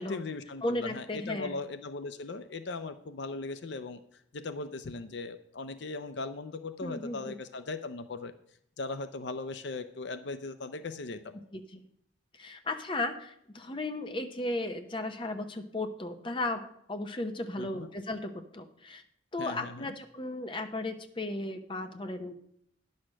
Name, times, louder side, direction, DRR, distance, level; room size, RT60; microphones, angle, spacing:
voice 1, 0.0-4.0 4.3-8.3 8.8-11.3 17.6-17.9 19.4-19.9, left 3 dB, 65° left, 11 dB, 0.5 m, -38 dB
voice 2, 0.6-1.6 6.8-7.3 11.5-11.8 12.3-16.6 16.9-19.0 19.3-22.3, left 2 dB, 25° left, 7 dB, 0.7 m, -35 dB
10.0 x 6.4 x 6.3 m, 0.70 s
head